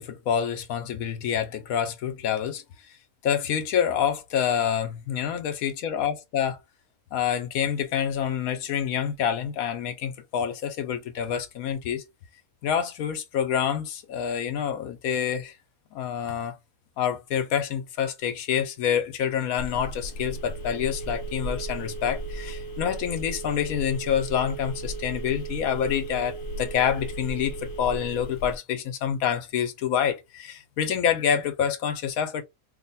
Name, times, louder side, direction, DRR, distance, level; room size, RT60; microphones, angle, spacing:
voice 1, 0.0-2.6 3.2-6.6 7.1-12.0 12.6-15.6 15.9-16.6 17.0-32.4, left 8 dB, 75° left, 1.1 m, -27 dB
Telephone, 19.6-28.6, right 2 dB, 55° left, 0.6 m, -35 dB
3.2 x 2.2 x 4.0 m
omnidirectional pair, 1.5 m